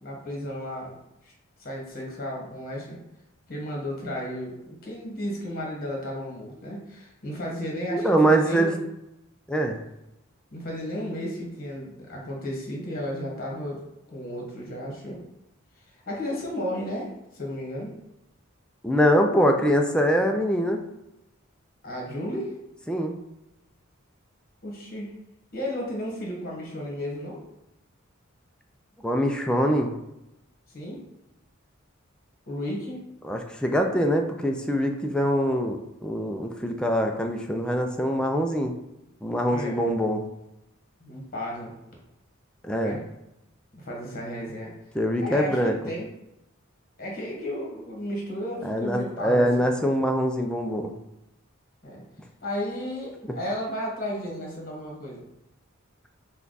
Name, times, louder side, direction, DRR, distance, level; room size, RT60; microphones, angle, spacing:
voice 1, 0.0-0.9 1.2-1.3 1.6-3.0 3.5-8.9 10.5-13.8 14.1-15.2 16.1-17.9 21.8-22.5 24.6-25.1 25.5-27.4 30.7-31.0 32.5-33.0 39.5-39.9 41.0-41.7 42.8-43.0 43.7-44.7 45.2-46.1 47.0-49.7 51.8-52.0 52.4-55.3, equal, 45° left, -2 dB, 1.5 m, -33 dB
voice 2, 7.9-8.7 9.5-9.8 18.8-20.8 22.9-23.1 29.0-30.0 33.2-38.7 39.2-40.3 42.6-42.9 44.9-45.7 48.6-50.9, equal, 5° left, 3 dB, 0.4 m, -23 dB
5.7 x 2.4 x 4.0 m, 0.88 s
head